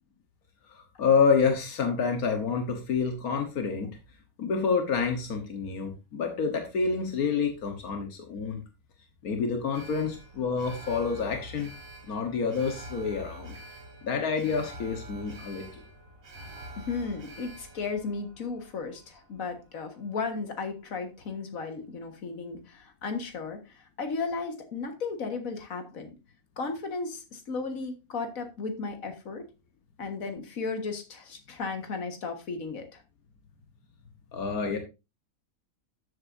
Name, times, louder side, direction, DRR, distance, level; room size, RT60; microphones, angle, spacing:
voice 1, 0.7-4.0 4.4-8.6 9.2-11.7 12.1-13.6 14.0-15.8 34.3-34.8, left 5 dB, 85° left, 4 dB, 1.7 m, -28 dB
Alarm, 9.7-20.0 20.3-20.4, right 1 dB, 65° right, 2.2 m, -46 dB
voice 2, 16.8-26.1 26.6-29.5 30.0-33.0, left 4 dB, 70° left, 5 dB, 2.0 m, -35 dB
13.0 x 7.9 x 2.6 m, 0.27 s
omnidirectional pair, 1.5 m